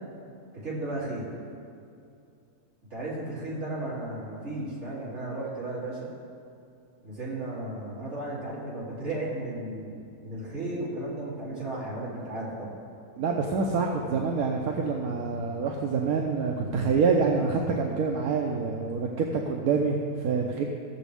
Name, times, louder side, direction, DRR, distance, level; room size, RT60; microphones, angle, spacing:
voice 1, 0.6-1.3 2.9-6.1 7.0-12.7, right 2 dB, 50° right, -9 dB, 3.3 m, -34 dB
voice 2, 13.2-20.6, right 5 dB, 75° right, 1 dB, 1.2 m, -26 dB
16.0 x 7.1 x 3.4 m, 2.5 s
omnidirectional pair, 1.6 m